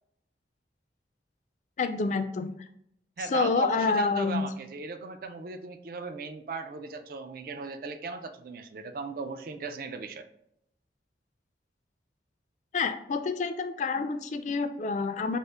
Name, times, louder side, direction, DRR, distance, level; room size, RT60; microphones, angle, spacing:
voice 1, 1.8-2.5 3.2-4.5 12.7-15.4, left 4 dB, 40° left, 8 dB, 0.3 m, -28 dB
voice 2, 3.2-10.3, right 4 dB, 50° right, 8 dB, 0.4 m, -37 dB
5.3 x 2.1 x 3.3 m, 0.74 s
head